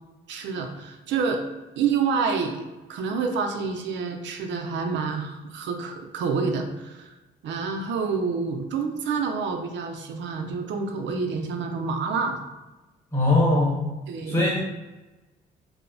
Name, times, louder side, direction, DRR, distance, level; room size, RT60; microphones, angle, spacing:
voice 1, 0.3-1.4 1.8-2.6 2.9-7.1 7.4-12.4 14.1-14.4, right 5 dB, 65° right, 4 dB, 0.4 m, -28 dB
voice 2, 13.1-13.9 14.3-14.6, left 2 dB, 10° left, -4 dB, 1.0 m, -21 dB
2.7 x 2.0 x 2.5 m, 1.1 s
cardioid pair, 90°, 20 cm